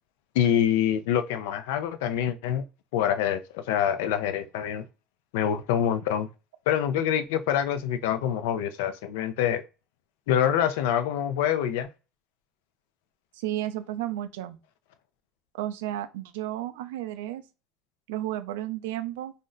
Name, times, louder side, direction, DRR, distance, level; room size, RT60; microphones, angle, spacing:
voice 1, 0.3-2.6 2.9-4.8 5.3-6.3 6.7-9.6 10.3-11.9, left 9 dB, 85° left, 0.4 m, -25 dB
voice 2, 13.3-14.6 15.5-17.4 18.1-19.3, right 13 dB, 90° right, 0.4 m, -32 dB
2.4 x 2.1 x 3.7 m
supercardioid pair, 105°, 0 cm